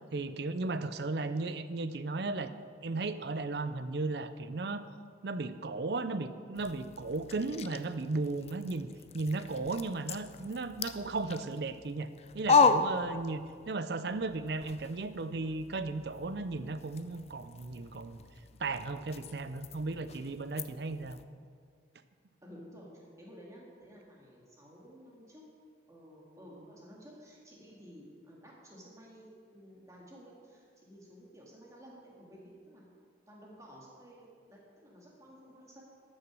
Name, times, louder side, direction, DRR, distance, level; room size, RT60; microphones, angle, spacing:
voice 1, 0.1-2.5 2.8-4.8 5.2-8.9 9.1-18.2 18.6-21.2, right 3 dB, 60° right, 12 dB, 0.5 m, -35 dB
sound 1, 6.5-13.7 14.0-21.2, left 4 dB, 35° left, 0.4 m, -35 dB
voice 2, 22.4-25.4 25.9-32.9 33.3-35.8, equal, 15° right, -3 dB, 2.1 m, -53 dB
13.5 x 6.4 x 6.2 m, 2.1 s
head